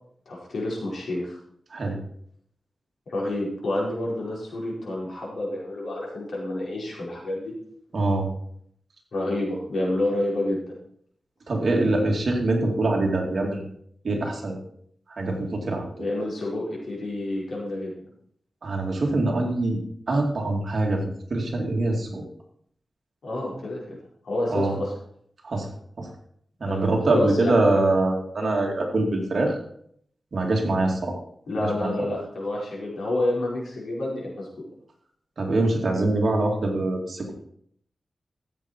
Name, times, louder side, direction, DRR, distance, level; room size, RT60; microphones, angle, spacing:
voice 1, 0.3-1.4 3.1-7.5 9.1-10.7 16.0-17.9 23.2-24.0 24.2-24.9 26.7-28.0 31.5-34.5, left 1 dB, 80° left, -4 dB, 4.9 m, -29 dB
voice 2, 7.9-8.3 11.5-13.7 14.0-14.6 15.1-16.1 18.6-19.8 20.1-21.0 21.3-22.2 24.5-24.7 25.4-25.7 26.0-26.1 26.6-29.6 30.3-31.1 31.6-32.1 35.4-37.3, right 2 dB, 50° right, 0 dB, 2.5 m, -24 dB
14.0 x 8.1 x 4.5 m, 0.65 s
wide cardioid pair, 155°, 0 cm